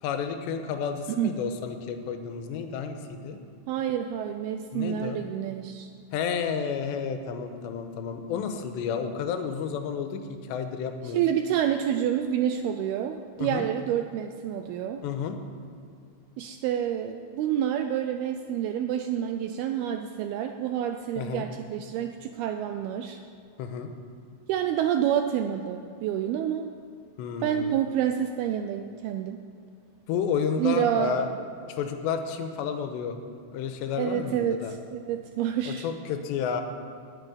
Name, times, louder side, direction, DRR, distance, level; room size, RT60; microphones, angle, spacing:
voice 1, 0.0-3.4 4.7-5.2 6.1-11.2 13.4-13.7 15.0-15.4 21.2-21.5 23.6-23.9 27.2-27.8 30.1-31.3 31.7-33.2 33.5-34.7 35.7-36.6, left 7 dB, 90° left, 7 dB, 3.1 m, -31 dB
voice 2, 3.7-5.9 11.1-15.0 16.4-23.2 24.5-26.6 27.4-29.4 30.6-31.2 34.0-34.6 34.9-35.9, right 10 dB, 85° right, 6 dB, 2.2 m, -28 dB
9.9 x 9.2 x 9.7 m, 2.3 s
omnidirectional pair, 5.0 m